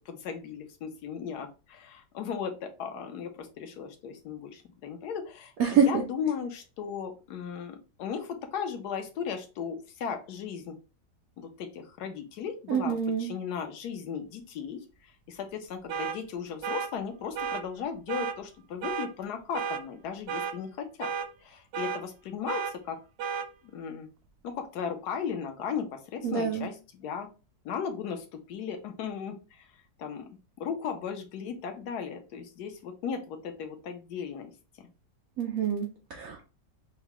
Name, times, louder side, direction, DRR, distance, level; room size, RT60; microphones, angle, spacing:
voice 1, 0.1-10.8 11.4-21.1 21.4-23.0 23.7-24.1 24.4-27.3 27.6-29.7 30.0-30.3 30.6-34.5, left 7 dB, 70° left, 5 dB, 1.2 m, -36 dB
voice 2, 5.6-6.0 12.7-13.3 26.2-26.7 35.4-36.5, right 6 dB, 65° right, 1 dB, 0.9 m, -26 dB
sound 1, 15.9-16.2 16.6-16.9 17.4-17.6 18.1-18.4 18.8-19.1 19.5-19.8 20.3-20.5 21.0-21.3 21.7-22.0 22.5-22.7 23.2-23.5, right 7 dB, 85° right, 1.2 m, -32 dB
4.6 x 2.1 x 2.9 m, 0.31 s
omnidirectional pair, 1.9 m